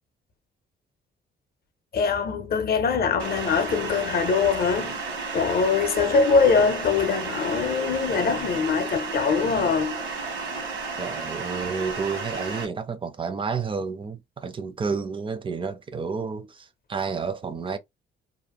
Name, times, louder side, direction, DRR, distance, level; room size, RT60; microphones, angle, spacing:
voice 1, 1.9-5.0 5.3-10.0, left 5 dB, 50° left, 0.6 m, -23 dB
sound 1, 3.2-12.7, right 4 dB, 80° right, 1.1 m, -33 dB
voice 2, 11.0-17.8, right 5 dB, 25° right, 0.4 m, -30 dB
2.5 x 2.0 x 2.9 m
cardioid pair, 90°, 20 cm